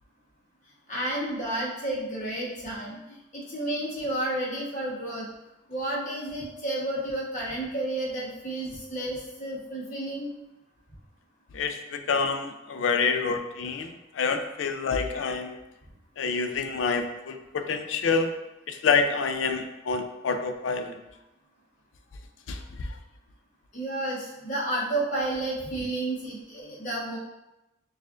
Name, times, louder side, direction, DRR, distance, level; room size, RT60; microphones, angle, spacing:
voice 1, 0.9-5.3 5.7-10.3 23.7-27.2, right 1 dB, 40° left, -4 dB, 1.0 m, -31 dB
voice 2, 11.5-13.9 14.2-15.5 16.2-18.3 18.7-21.0 22.5-22.6, left 5 dB, 75° left, 6 dB, 0.4 m, -27 dB
6.3 x 2.5 x 2.4 m, 0.94 s
head